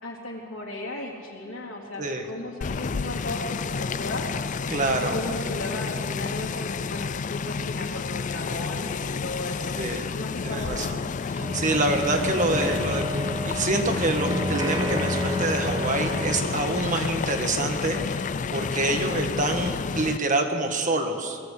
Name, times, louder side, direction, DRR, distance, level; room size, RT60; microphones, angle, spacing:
voice 1, 0.0-4.3 5.0-9.8 10.1-10.8 18.9-19.0, left 2 dB, 75° left, -1 dB, 3.8 m, -35 dB
sound 1, 2.6-20.2, left 5 dB, 40° left, 0.4 m, -30 dB
voice 2, 4.7-5.2 9.7-10.1 10.4-21.4, right 2 dB, 40° right, 4 dB, 1.7 m, -27 dB
sound 2, 11.4-16.7, equal, 20° right, 1.1 m, -30 dB
20.5 x 15.0 x 8.5 m, 2.4 s
head